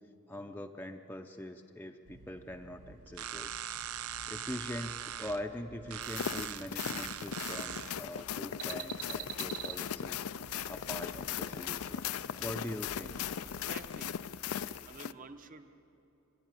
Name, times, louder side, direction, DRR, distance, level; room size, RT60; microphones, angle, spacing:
voice 1, 0.3-3.6 4.3-10.3 10.7-12.1 12.4-13.2, left 1 dB, 10° left, 3 dB, 0.6 m, -43 dB
sound 1, 2.1-15.0, right 9 dB, 80° right, 0.7 m, -44 dB
sound 2, 6.0-15.1, left 9 dB, 75° left, 0.4 m, -38 dB
voice 2, 13.4-14.1 14.9-15.7, right 3 dB, 35° right, 8 dB, 1.0 m, -50 dB
25.5 x 12.0 x 9.8 m, 3.0 s
head